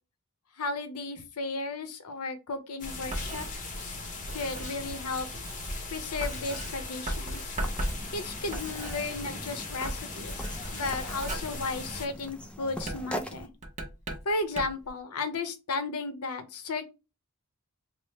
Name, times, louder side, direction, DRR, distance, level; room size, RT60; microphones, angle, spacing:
voice 1, 0.6-3.5 3.8-4.0 4.3-5.3 5.9-7.5 8.1-13.5 14.2-16.9, left 3 dB, 80° left, 0.7 m, -34 dB
sound 1, 2.8-12.1, left 3 dB, 35° left, 0.7 m, -40 dB
Writing, 2.8-9.5 9.7-12.3 12.8-14.9, right 1 dB, 30° right, 0.7 m, -37 dB
sound 2, 7.6-13.5, equal, 5° left, 0.3 m, -42 dB
3.3 x 2.0 x 4.1 m
head